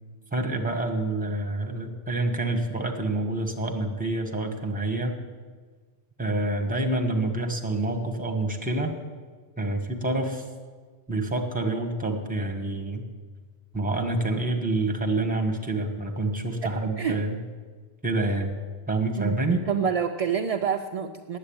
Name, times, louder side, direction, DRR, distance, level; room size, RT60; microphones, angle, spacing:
voice 1, 0.3-5.2 6.2-8.9 9.6-10.4 11.1-13.0 13.7-17.4 18.0-18.6 18.9-19.6, right 2 dB, 10° right, 4 dB, 1.2 m, -27 dB
voice 2, 16.6-17.2 19.2-19.3 19.7-21.4, right 7 dB, 55° right, 5 dB, 0.4 m, -27 dB
9.7 x 8.1 x 8.6 m, 1.5 s
omnidirectional pair, 1.1 m